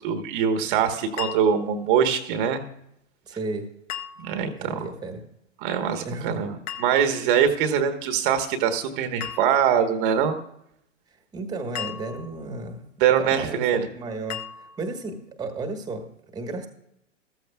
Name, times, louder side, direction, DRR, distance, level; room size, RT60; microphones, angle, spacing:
voice 1, 0.0-2.6 4.2-4.8 5.6-10.3 13.0-13.9, right 8 dB, 40° right, 7 dB, 1.2 m, -23 dB
sound 1, 1.2-1.9 3.9-4.6 6.7-7.4 9.2-9.9 11.8-12.6 14.3-15.0, left 10 dB, 25° left, 0.6 m, -37 dB
voice 2, 3.3-3.7 4.4-5.2 6.0-6.4 11.3-12.8 13.2-13.6 13.9-16.7, right 3 dB, 10° right, 5 dB, 1.3 m, -33 dB
14.0 x 14.0 x 2.3 m, 0.77 s
hypercardioid pair, 115°, 38 cm